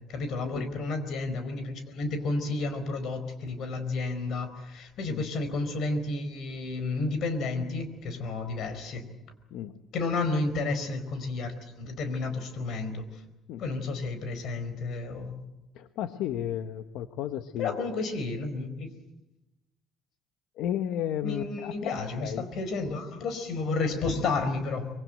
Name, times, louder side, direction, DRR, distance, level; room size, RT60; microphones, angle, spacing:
voice 1, 0.1-9.1 9.9-13.2 13.6-15.4 17.6-18.9 21.2-24.9, left 3 dB, 45° left, 9 dB, 4.5 m, -31 dB
voice 2, 15.7-17.8 20.6-22.5, left 10 dB, 65° left, 9 dB, 1.2 m, -33 dB
25.0 x 23.5 x 7.9 m, 0.96 s
cardioid pair, 180°, 0 cm